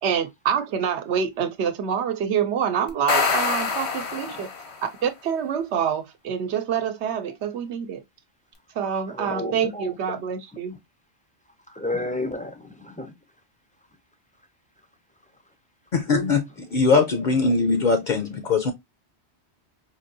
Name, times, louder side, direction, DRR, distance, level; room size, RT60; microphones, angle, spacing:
voice 1, 0.0-4.5 4.8-8.0 8.7-10.7, right 8 dB, 85° right, 0.9 m, -26 dB
sound 1, 2.9-4.9, left 4 dB, 80° left, 1.2 m, -25 dB
voice 2, 9.1-9.9 11.7-13.1, left 1 dB, 10° left, 0.4 m, -31 dB
voice 3, 15.9-18.7, left 4 dB, 55° left, 0.6 m, -21 dB
4.5 x 2.6 x 2.5 m
omnidirectional pair, 1.1 m